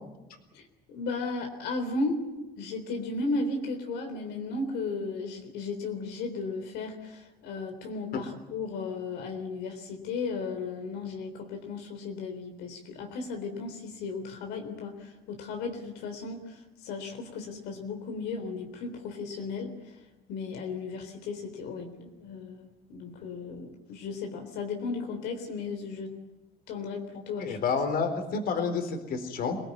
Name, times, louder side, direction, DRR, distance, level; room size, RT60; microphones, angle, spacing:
voice 1, 0.5-2.2 2.6-19.7 20.3-26.1 26.7-27.6, left 3 dB, 85° left, 4 dB, 3.8 m, -35 dB
voice 2, 27.4-29.6, left 5 dB, 65° left, 7 dB, 4.2 m, -29 dB
26.0 x 18.0 x 9.5 m, 1.1 s
cardioid pair, 110°, 17 cm